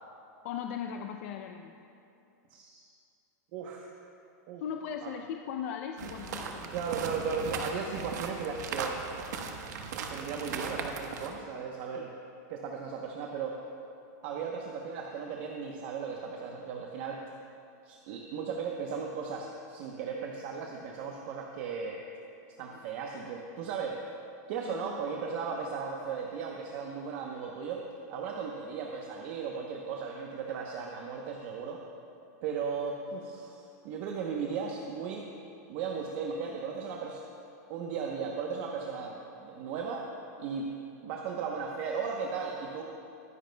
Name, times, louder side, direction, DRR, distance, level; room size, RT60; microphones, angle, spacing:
voice 1, 0.4-1.7 4.6-6.6 11.9-12.1 22.7-22.8 24.6-25.0, left 8 dB, 55° left, 5 dB, 0.5 m, -38 dB
voice 2, 2.5-2.9 3.5-3.9 4.5-4.6 5.0-5.1 6.7-9.0 10.1-12.1 12.5-13.6 14.2-17.2 17.8-22.0 22.6-24.0 24.5-31.8 32.4-35.3 35.7-37.3 37.7-40.1 40.4-40.7 41.0-42.8, right 5 dB, 50° right, 1 dB, 0.9 m, -36 dB
sound 1, 6.0-11.4, right 5 dB, 80° right, 1.2 m, -38 dB
22.0 x 10.5 x 2.2 m, 2.7 s
supercardioid pair, 160°, 9 cm